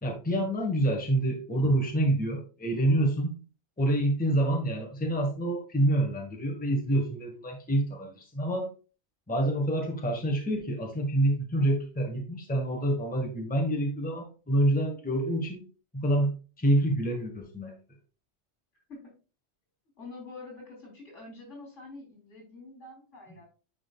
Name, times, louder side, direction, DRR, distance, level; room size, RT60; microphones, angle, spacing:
voice 1, 0.0-3.4 3.8-8.7 9.3-15.6 15.9-17.7, right 1 dB, 5° left, 1.3 m, -27 dB
voice 2, 20.0-23.5, left 3 dB, 70° left, 3.9 m, -46 dB
9.9 x 5.0 x 2.3 m
omnidirectional pair, 1.3 m